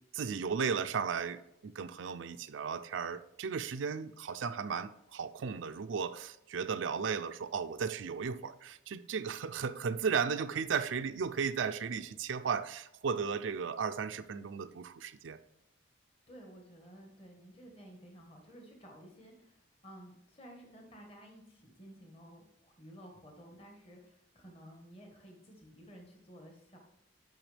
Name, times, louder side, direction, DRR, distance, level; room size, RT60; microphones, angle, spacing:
voice 1, 0.1-15.4, right 6 dB, 80° right, 10 dB, 0.4 m, -35 dB
voice 2, 16.3-26.8, equal, 30° left, 1 dB, 1.3 m, -54 dB
8.8 x 5.9 x 3.3 m, 0.81 s
head